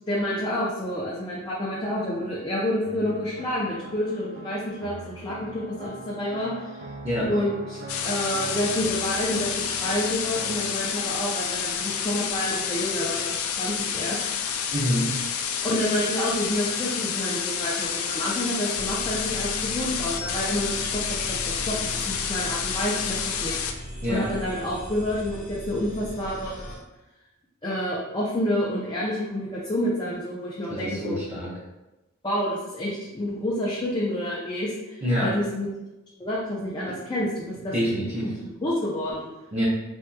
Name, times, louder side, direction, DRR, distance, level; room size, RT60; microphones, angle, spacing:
voice 1, 0.1-6.8 7.3-14.6 15.6-23.6 24.1-26.8 27.6-31.3 32.2-35.7 36.2-37.7 38.2-39.3, left 1 dB, 20° left, -6 dB, 0.4 m, -29 dB
sound 1, 2.8-10.8, right 2 dB, 60° right, 0.4 m, -41 dB
sound 2, 7.9-23.7, left 7 dB, 90° left, 0.3 m, -29 dB
voice 2, 14.7-15.1 24.0-24.2 30.7-31.5 35.0-35.3 37.7-38.3 39.5-39.7, equal, 30° right, -8 dB, 0.7 m, -26 dB
sound 3, 18.7-26.8, equal, 15° right, 1.1 m, -38 dB
3.4 x 2.8 x 2.2 m, 1.0 s
head